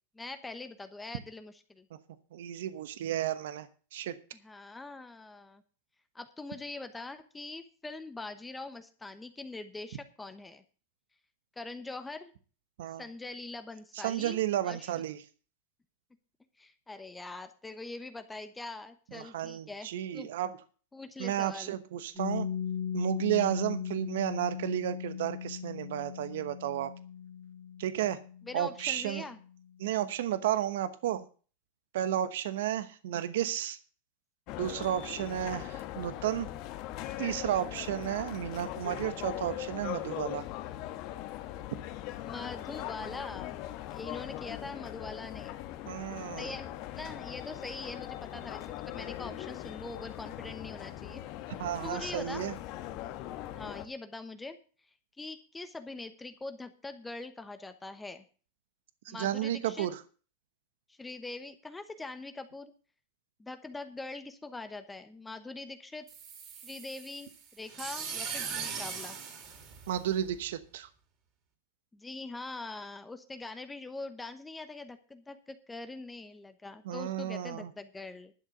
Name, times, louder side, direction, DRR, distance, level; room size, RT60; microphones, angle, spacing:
voice 1, 0.1-1.9 4.4-5.6 6.1-10.6 11.6-12.3 13.0-14.4 14.6-14.9 16.6-20.3 20.9-21.8 28.4-29.4 34.5-34.7 37.4-37.6 42.2-43.6 43.9-45.6 46.4-46.7 47.0-51.2 51.8-52.5 53.5-54.6 55.2-58.2 59.1-59.9 60.9-62.7 63.4-66.1 66.6-69.2 71.9-78.3, left 3 dB, 10° left, 9 dB, 1.0 m, -43 dB
voice 2, 2.3-4.1 12.8-13.0 13.9-15.2 19.1-20.5 21.2-22.5 22.9-26.9 27.8-28.2 28.5-29.3 29.8-31.3 31.9-33.8 34.6-36.5 37.2-40.4 45.9-46.5 51.6-52.5 59.0-60.0 69.9-70.9 76.8-77.7, right 11 dB, 75° right, 13 dB, 1.0 m, -32 dB
Piano, 22.1-29.4, left 8 dB, 25° right, 2.8 m, -38 dB
sound 1, 34.5-53.9, left 13 dB, 50° left, 1.3 m, -40 dB
sound 2, 66.1-70.4, right 6 dB, 40° right, 3.1 m, -40 dB
11.5 x 6.5 x 7.8 m, 0.39 s
hypercardioid pair, 125°, 0 cm